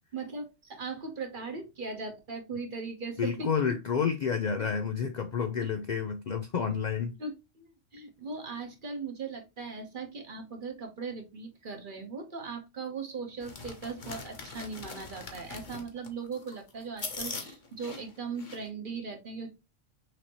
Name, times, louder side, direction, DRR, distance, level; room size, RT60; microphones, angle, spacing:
voice 1, 0.1-3.3 7.2-7.6 7.9-19.5, right 4 dB, 45° right, 1.1 m, -39 dB
voice 2, 3.2-7.1, left 6 dB, 60° left, 0.4 m, -30 dB
sound 1, 13.4-18.7, left 4 dB, 40° left, 1.0 m, -42 dB
6.0 x 2.8 x 2.9 m
omnidirectional pair, 1.3 m